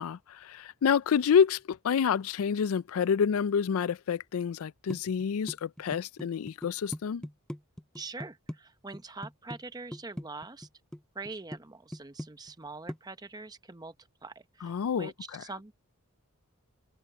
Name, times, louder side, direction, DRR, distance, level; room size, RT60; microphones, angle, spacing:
voice 1, 0.0-7.3 14.6-15.1, left 7 dB, 70° left, 0.4 m, -28 dB
sound 1, 4.9-8.6 8.9-9.6 9.9-11.0 11.3-11.6 11.9-12.6 12.9-13.0, equal, 5° left, 0.4 m, -39 dB
voice 2, 7.9-10.7 11.1-14.0 14.2-15.7, right 3 dB, 20° right, 0.8 m, -43 dB
head